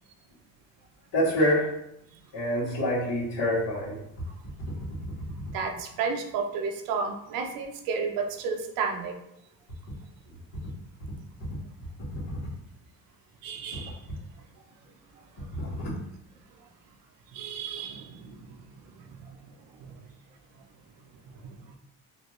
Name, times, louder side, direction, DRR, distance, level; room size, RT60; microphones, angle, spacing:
voice 1, 1.1-1.7 2.3-4.0 12.1-12.2 15.5-15.9, equal, 70° left, -11 dB, 1.4 m, -26 dB
voice 2, 5.5-9.1 13.4-14.0 15.8-15.9 17.3-19.3 19.7-19.9 21.4-21.5, right 5 dB, 85° right, 4 dB, 0.6 m, -33 dB
3.2 x 2.5 x 3.0 m, 0.80 s
cardioid pair, 100°, 33 cm